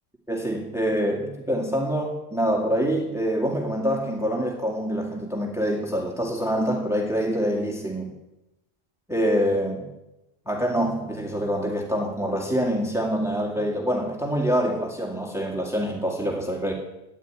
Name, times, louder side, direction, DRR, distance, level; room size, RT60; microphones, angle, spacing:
voice 1, 0.3-8.1 9.1-9.9 10.5-16.7, equal, 5° right, -1 dB, 2.3 m, -25 dB
14.0 x 10.5 x 9.1 m, 0.95 s
omnidirectional pair, 1.1 m